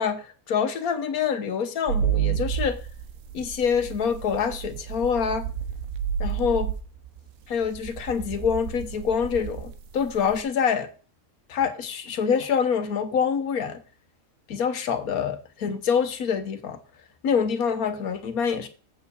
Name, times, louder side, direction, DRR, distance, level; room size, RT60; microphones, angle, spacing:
voice 1, 0.0-2.8 3.3-5.5 6.2-6.7 7.5-10.9 11.5-13.8 14.5-16.8 17.2-18.7, left 7 dB, 80° left, 1.5 m, -26 dB
sound 1, 1.9-10.4, right 9 dB, 75° right, 1.2 m, -30 dB
7.9 x 4.6 x 6.8 m
omnidirectional pair, 1.5 m